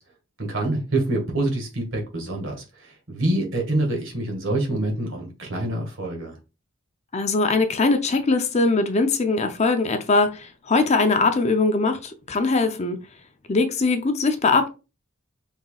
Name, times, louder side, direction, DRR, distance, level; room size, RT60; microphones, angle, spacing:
voice 1, 0.4-2.6 3.1-6.3, right 1 dB, 65° right, 1.7 m, -26 dB
voice 2, 7.1-13.0 13.5-14.7, left 3 dB, 35° left, 0.5 m, -21 dB
5.6 x 3.6 x 2.3 m
head